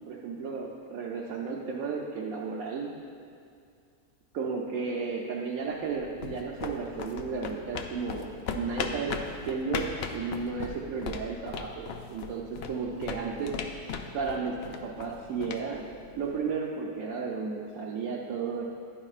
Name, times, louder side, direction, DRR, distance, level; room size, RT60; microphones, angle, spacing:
voice 1, 0.1-2.9 4.3-9.1 9.5-13.5 14.1-15.9 16.2-18.6, right 5 dB, 65° right, -3 dB, 1.1 m, -33 dB
sound 1, 5.8-16.6, left 5 dB, 75° left, 0.5 m, -38 dB
10.5 x 9.8 x 2.4 m, 2.3 s
omnidirectional pair, 1.7 m